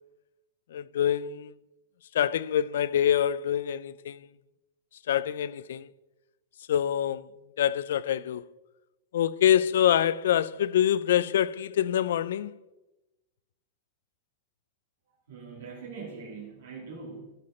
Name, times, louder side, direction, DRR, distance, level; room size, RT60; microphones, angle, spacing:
voice 1, 0.7-1.5 2.1-4.2 5.1-5.9 6.7-7.3 7.6-8.5 9.1-12.5, left 10 dB, 75° left, 0.4 m, -25 dB
voice 2, 15.3-17.3, right 4 dB, 80° right, 3.0 m, -42 dB
13.5 x 6.7 x 4.3 m
supercardioid pair, 180°, 0 cm